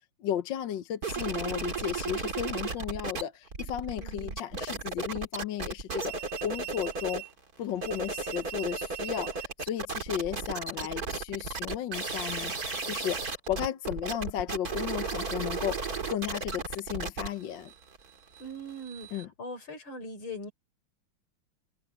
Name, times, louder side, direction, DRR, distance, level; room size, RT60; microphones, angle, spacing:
voice 1, 0.2-7.2 7.6-17.7 19.1-19.3, left 10 dB, 65° left, 1.6 m, -34 dB
sound 1, 1.0-3.2 3.5-7.3 7.7-19.2, right 4 dB, 45° right, 3.1 m, -35 dB
voice 2, 4.0-4.4 18.4-20.5, equal, 85° left, 5.0 m, -41 dB
omnidirectional pair, 2.2 m